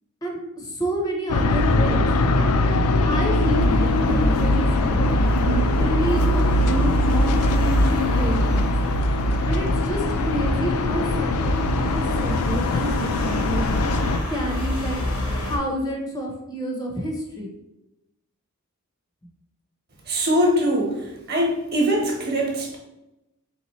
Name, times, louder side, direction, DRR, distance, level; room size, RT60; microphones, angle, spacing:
voice 1, 0.2-2.0 2.4-2.5 3.0-5.1 5.4-8.7 9.5-13.9 14.3-15.0 15.3-17.5, right 1 dB, 15° left, 0 dB, 0.6 m, -29 dB
sound 1, 1.3-14.2, left 1 dB, 85° left, 0.4 m, -21 dB
sound 2, 3.4-15.6, left 1 dB, 70° left, 0.8 m, -29 dB
voice 2, 20.1-21.0 21.3-22.8, equal, 45° right, 0 dB, 1.0 m, -22 dB
3.5 x 3.0 x 4.0 m, 0.94 s
head